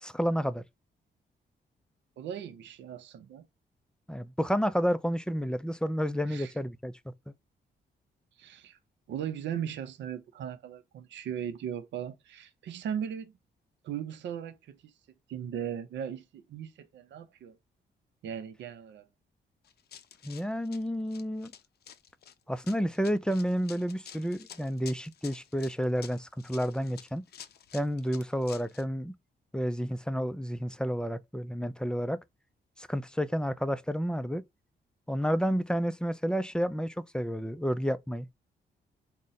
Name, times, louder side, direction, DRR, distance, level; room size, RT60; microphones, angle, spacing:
voice 1, 0.0-0.6 4.1-7.1 20.2-21.5 22.5-27.2 27.7-29.1 29.5-32.2 32.8-34.4 35.1-38.3, equal, 5° left, 0.3 m, -30 dB
voice 2, 2.2-3.5 6.3-6.5 8.4-8.8 9.1-13.3 13.8-14.9 15.3-17.6 18.2-19.1, right 9 dB, 80° right, 0.6 m, -38 dB
Run, 19.6-28.8, left 9 dB, 60° left, 0.5 m, -50 dB
3.7 x 2.1 x 4.0 m
cardioid pair, 85°, 18 cm